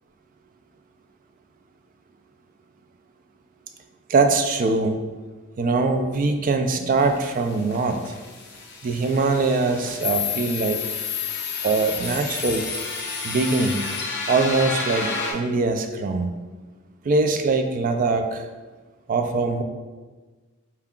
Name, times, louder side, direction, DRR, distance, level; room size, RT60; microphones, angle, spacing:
voice 1, 4.1-5.0 5.6-8.1 8.8-10.9 11.6-12.7 13.2-13.9 14.3-16.3 17.0-18.5 19.1-19.6, right 3 dB, 40° right, 6 dB, 0.3 m, -22 dB
sound 1, 7.0-15.3, left 5 dB, 50° left, 0.6 m, -30 dB
4.4 x 2.3 x 3.6 m, 1.3 s
head